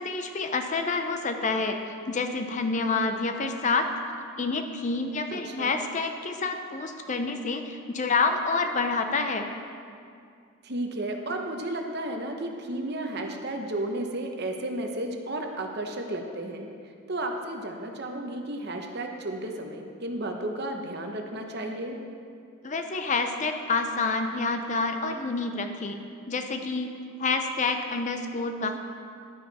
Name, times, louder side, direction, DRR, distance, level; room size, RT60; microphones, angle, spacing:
voice 1, 0.0-1.8 2.1-3.9 4.4-9.5 22.6-26.0 26.3-26.9 27.2-28.8, left 3 dB, 35° left, 6 dB, 0.5 m, -28 dB
voice 2, 5.3-5.8 10.6-16.7 17.1-22.0, right 1 dB, 50° right, 3 dB, 0.9 m, -33 dB
11.0 x 9.7 x 4.1 m, 2.3 s
head